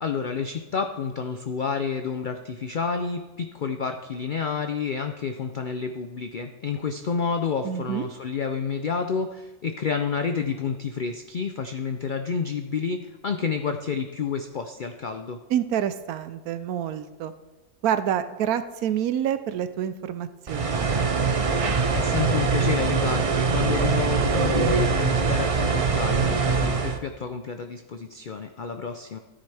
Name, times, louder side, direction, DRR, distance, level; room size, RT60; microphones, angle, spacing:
voice 1, 0.0-15.4 21.9-29.2, left 5 dB, 80° left, 6 dB, 0.4 m, -29 dB
voice 2, 7.6-8.1 15.5-17.3 17.8-20.8, right 10 dB, 75° right, 12 dB, 1.1 m, -27 dB
routers-noise, 20.5-27.0, right 5 dB, 50° right, 0.4 m, -23 dB
13.0 x 9.7 x 3.4 m, 1.2 s
omnidirectional pair, 1.6 m